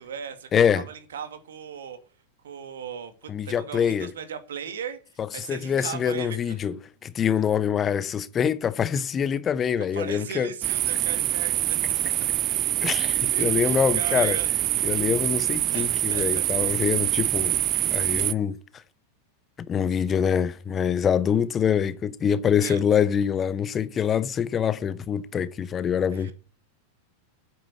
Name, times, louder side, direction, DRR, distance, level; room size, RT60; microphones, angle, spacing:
voice 1, 0.0-2.0 2.4-6.6 9.9-11.8 12.8-12.9 13.3-14.5 14.9-15.0 15.7-16.5 18.0-18.1 22.6-22.8 26.1-26.3, right 7 dB, 60° right, 2.3 m, -37 dB
voice 2, 0.5-0.8 3.3-4.1 5.2-6.8 7.0-10.5 12.8-14.4 14.8-17.6 17.9-18.6 19.6-26.3, left 8 dB, 25° left, 0.8 m, -25 dB
sound 1, 10.6-18.3, right 14 dB, 35° right, 0.6 m, -25 dB
9.1 x 8.7 x 9.8 m
figure-of-eight pair, 90°, 0 cm